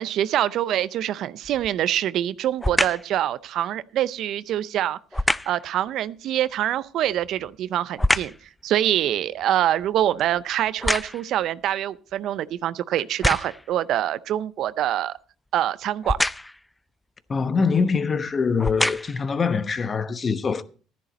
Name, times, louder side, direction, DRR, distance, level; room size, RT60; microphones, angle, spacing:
voice 1, 0.0-5.0 5.5-8.3 8.6-15.2 15.5-16.2, right 12 dB, 65° right, 0.5 m, -25 dB
sound 1, 1.4-1.8 2.6-3.1 5.1-5.6 7.0-8.5 8.9-11.4 12.1-12.2 13.0-13.7 16.0-16.6 17.7-17.8 18.5-19.3 19.9-20.0, left 1 dB, 10° left, 0.4 m, -26 dB
voice 2, 17.3-20.6, left 5 dB, 35° left, 1.0 m, -23 dB
13.0 x 10.5 x 4.1 m
supercardioid pair, 90°, 0 cm